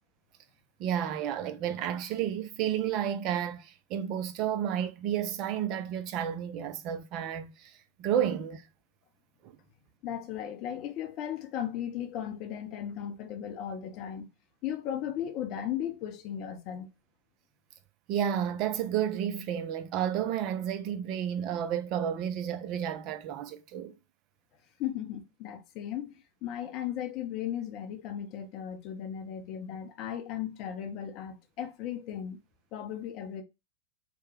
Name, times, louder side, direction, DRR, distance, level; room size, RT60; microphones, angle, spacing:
voice 1, 0.8-7.7 8.0-8.7 9.4-9.6 18.1-23.9, right 9 dB, 40° right, 0.4 m, -31 dB
voice 2, 10.0-14.3 14.6-16.9 24.8-32.4 32.7-33.4, left 10 dB, 40° left, 0.6 m, -36 dB
3.0 x 2.1 x 3.1 m
figure-of-eight pair, 90°, 0 cm